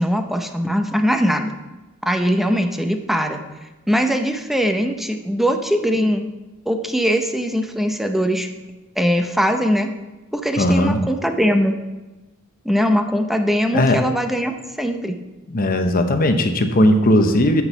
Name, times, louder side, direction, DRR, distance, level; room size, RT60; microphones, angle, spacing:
voice 1, 0.0-1.5 2.1-3.4 3.9-6.2 6.7-8.5 9.0-9.9 10.3-11.8 12.6-15.2, equal, ahead, 6 dB, 0.6 m, -21 dB
voice 2, 10.6-11.0 13.7-14.0 15.5-17.6, left 1 dB, 45° left, 7 dB, 0.9 m, -17 dB
8.5 x 6.2 x 5.6 m, 1.1 s
head